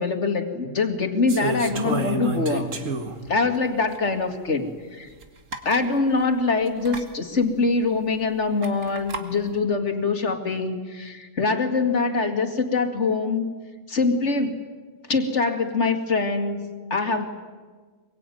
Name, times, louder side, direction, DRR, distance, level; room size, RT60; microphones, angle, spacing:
voice 1, 0.0-2.7 3.3-5.1 5.6-13.4 13.9-14.5 15.1-17.2, left 4 dB, 60° left, 5 dB, 2.5 m, -24 dB
sound 1, 1.3-3.3 3.9-4.0 5.2-5.3 5.5-5.8 6.8-7.0 8.6-9.2, right 2 dB, 75° right, 2.3 m, -29 dB
24.5 x 23.0 x 9.2 m, 1.5 s
omnidirectional pair, 1.4 m